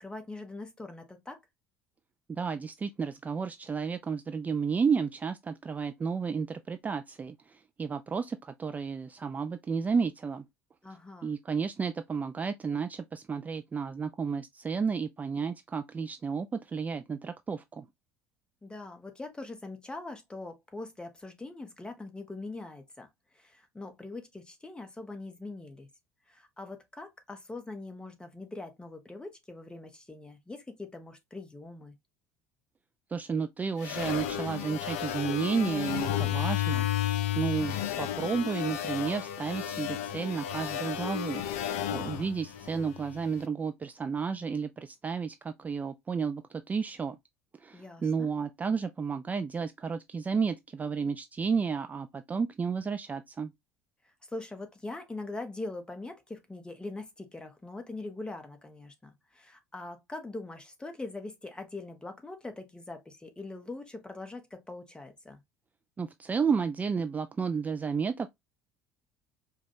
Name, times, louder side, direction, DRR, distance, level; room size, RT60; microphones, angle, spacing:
voice 1, 0.0-1.4 10.8-11.3 18.6-23.1 23.3-25.9 26.3-31.9 41.9-42.3 47.7-48.3 54.0-65.4, left 2 dB, 10° left, 1.0 m, -42 dB
voice 2, 2.3-10.4 11.2-17.9 33.1-36.9 37.4-47.2 47.6-53.5 66.0-68.3, right 5 dB, 20° right, 0.3 m, -32 dB
sound 1, 33.8-43.3, left 11 dB, 65° left, 0.5 m, -32 dB
4.8 x 2.3 x 2.7 m
figure-of-eight pair, 65°, 8 cm